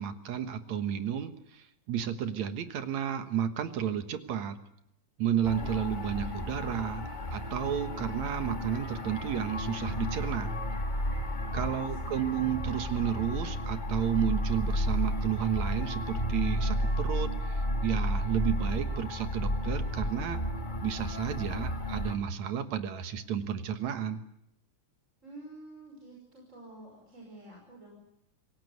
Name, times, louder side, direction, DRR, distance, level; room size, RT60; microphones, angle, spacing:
voice 1, 0.0-4.6 5.2-10.5 11.5-20.4 20.8-24.2, right 9 dB, 70° right, 9 dB, 2.7 m, -32 dB
sound 1, 5.4-22.2, equal, 20° left, 1.8 m, -32 dB
voice 2, 5.4-5.9 6.1-6.2 11.5-11.9 12.1-12.4 25.2-28.0, right 2 dB, 25° right, -1 dB, 5.8 m, -50 dB
26.0 x 17.0 x 9.5 m, 0.78 s
omnidirectional pair, 3.4 m